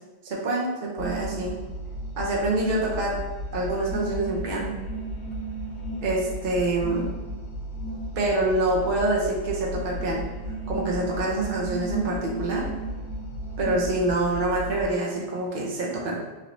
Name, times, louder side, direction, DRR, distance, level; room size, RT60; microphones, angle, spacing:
voice 1, 0.2-1.5 2.2-3.2 3.5-4.7 6.0-7.1 8.2-10.2 10.7-12.7 13.6-16.2, right 2 dB, 55° right, -3 dB, 0.8 m, -26 dB
sound 1, 1.0-14.8, right 1 dB, 90° left, 0.9 m, -34 dB
3.2 x 2.6 x 2.9 m, 1.2 s
omnidirectional pair, 1.1 m